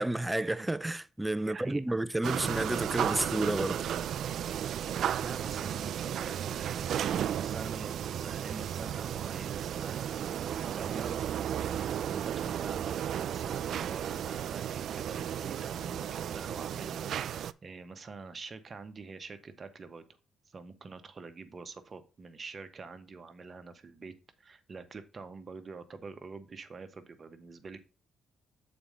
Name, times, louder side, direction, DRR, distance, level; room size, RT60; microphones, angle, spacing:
voice 1, 0.0-3.8, right 1 dB, 10° right, 0.5 m, -31 dB
voice 2, 1.4-1.8 5.2-10.2 10.6-11.3 11.6-20.0 20.5-27.8, right 4 dB, 40° right, 1.1 m, -46 dB
sound 1, 2.2-17.5, right 10 dB, 70° right, 0.4 m, -34 dB
7.0 x 4.4 x 5.1 m
cardioid pair, 90°, 0 cm